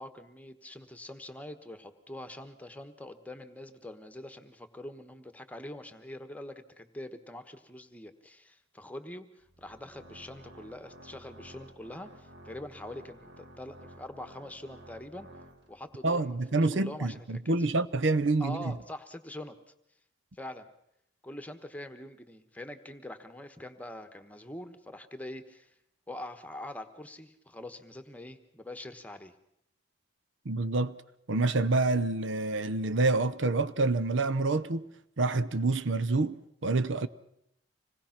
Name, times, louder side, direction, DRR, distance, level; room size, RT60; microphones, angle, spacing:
voice 1, 0.0-15.3 15.7-17.5 18.4-19.6 20.3-20.7 21.2-25.7 26.1-29.3, left 1 dB, 10° left, 1.2 m, -44 dB
Organ, 9.4-16.0, right 1 dB, 60° right, 2.2 m, -53 dB
voice 2, 16.0-18.7 30.4-31.0 31.3-34.9 35.2-37.1, right 3 dB, 75° right, 0.8 m, -27 dB
26.0 x 19.0 x 5.9 m
head